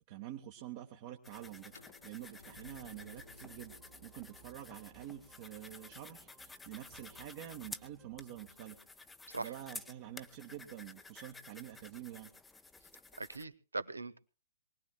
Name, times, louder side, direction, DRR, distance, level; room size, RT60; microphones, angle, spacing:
voice 1, 0.0-1.7 2.0-3.7 4.0-8.8 9.4-12.3, right 12 dB, 40° right, 2 dB, 1.3 m, -47 dB
sound 1, 1.2-13.4, left 3 dB, 10° left, 0.8 m, -53 dB
sound 2, 1.7-7.5, left 3 dB, 85° left, 2.4 m, -60 dB
sound 3, 2.9-9.0, right 11 dB, 20° right, 1.2 m, -64 dB
voice 2, 13.2-14.2, right 3 dB, 80° right, 14 dB, 1.0 m, -40 dB
24.0 x 19.0 x 2.2 m, 0.34 s
figure-of-eight pair, 120°, 0 cm